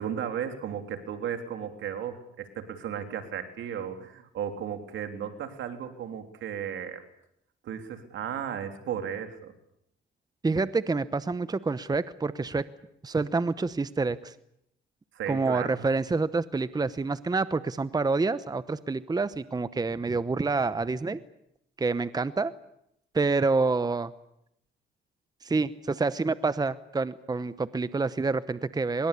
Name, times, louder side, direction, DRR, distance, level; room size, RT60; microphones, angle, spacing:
voice 1, 0.0-7.0 7.6-9.5 15.1-15.9, right 8 dB, 75° right, 7 dB, 3.3 m, -35 dB
voice 2, 10.4-12.6 13.0-14.3 15.3-21.2 21.8-22.5 23.1-24.1 25.4-29.1, right 3 dB, 20° right, 15 dB, 0.9 m, -27 dB
23.0 x 21.5 x 8.4 m, 0.78 s
cardioid pair, 90°, 20 cm